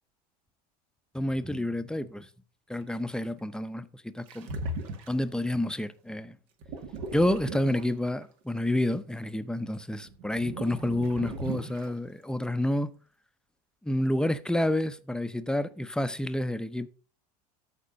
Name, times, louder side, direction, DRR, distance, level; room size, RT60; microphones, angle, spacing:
voice 1, 1.1-2.3 2.7-4.5 5.1-6.4 7.1-12.9 13.8-16.9, left 1 dB, 5° left, 0.8 m, -29 dB
sound 1, 4.3-5.4 6.6-8.2 10.0-11.9, right 2 dB, 70° right, 2.2 m, -37 dB
13.5 x 4.4 x 5.3 m
supercardioid pair, 100°, 20 cm